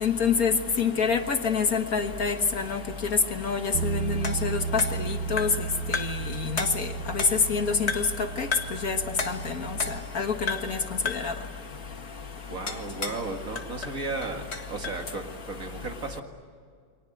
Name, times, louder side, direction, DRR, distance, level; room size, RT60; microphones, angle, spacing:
voice 1, 0.0-2.8 3.4-4.6 5.3-5.5 6.6-6.7 7.5-7.9 8.4-8.5 8.8-9.0 10.2-10.8 11.2-11.3, left 6 dB, 55° left, 6 dB, 1.8 m, -26 dB
Bass guitar, 3.7-10.0, right 6 dB, 85° right, 1.6 m, -34 dB
sound 1, 4.2-5.7 5.9-6.3 6.6-7.5 7.9-8.2 8.5-8.8 9.2-10.2 10.5-10.8 11.1-11.4 12.7-13.3 13.6-15.0, left 4 dB, 35° left, 1.9 m, -33 dB
voice 2, 12.5-14.4 14.7-16.2, right 3 dB, 45° right, 3 dB, 2.5 m, -34 dB
30.0 x 23.5 x 8.0 m, 2.2 s
omnidirectional pair, 2.0 m